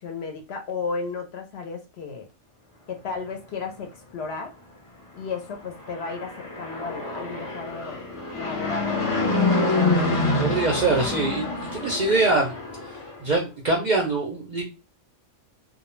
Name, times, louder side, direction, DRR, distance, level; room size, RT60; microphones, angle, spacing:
voice 1, 0.0-2.3 2.9-4.5 5.1-8.0 8.3-9.6, left 4 dB, 65° left, 0.8 m, -34 dB
Fixed-wing aircraft airplane, 5.8-13.2, left 2 dB, 40° left, 0.5 m, -26 dB
voice 2, 10.4-11.5 11.7-12.5 13.2-14.6, right 3 dB, 55° right, 0.5 m, -23 dB
2.3 x 2.1 x 3.0 m
omnidirectional pair, 1.3 m